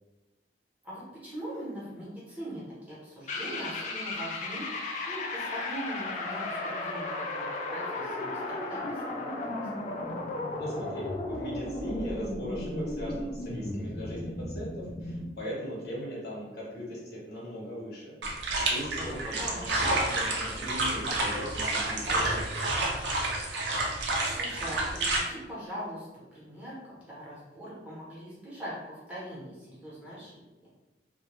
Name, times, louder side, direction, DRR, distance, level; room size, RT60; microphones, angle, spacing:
voice 1, 0.8-4.7 5.1-8.4 8.7-9.8 19.0-19.7 24.2-26.1 26.3-30.4, equal, 5° right, -9 dB, 0.8 m, -41 dB
sound 1, 3.3-15.3, left 2 dB, 45° left, 0.4 m, -35 dB
voice 2, 10.6-18.1 18.6-22.4, equal, 60° left, -5 dB, 0.8 m, -39 dB
sound 2, 18.2-25.2, right 2 dB, 85° right, 0.5 m, -29 dB
2.2 x 2.1 x 2.9 m, 1.0 s
head